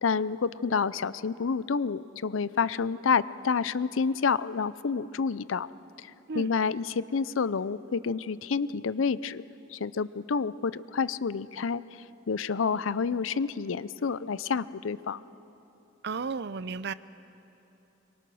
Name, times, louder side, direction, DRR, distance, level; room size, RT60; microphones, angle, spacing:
voice 1, 0.0-5.7 6.0-6.1 6.3-9.4 9.7-11.8 12.3-15.2, left 5 dB, 80° left, 17 dB, 0.5 m, -29 dB
voice 2, 16.0-16.9, right 5 dB, 55° right, 16 dB, 0.5 m, -33 dB
25.0 x 23.0 x 6.3 m, 2.9 s
head